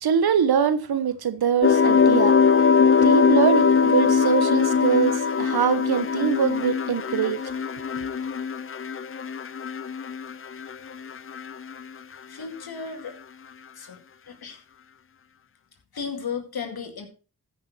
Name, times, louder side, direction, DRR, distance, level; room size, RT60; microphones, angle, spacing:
voice 1, 0.0-2.4 3.0-7.4 7.7-8.1, right 7 dB, 75° right, 1.2 m, -23 dB
sound 1, 1.6-10.7 11.0-11.7, left 6 dB, 35° left, 0.6 m, -21 dB
voice 2, 12.3-13.2 13.8-14.0 14.3-14.6 15.9-17.1, left 6 dB, 75° left, 2.2 m, -34 dB
14.5 x 6.2 x 4.2 m
cardioid pair, 45°, 37 cm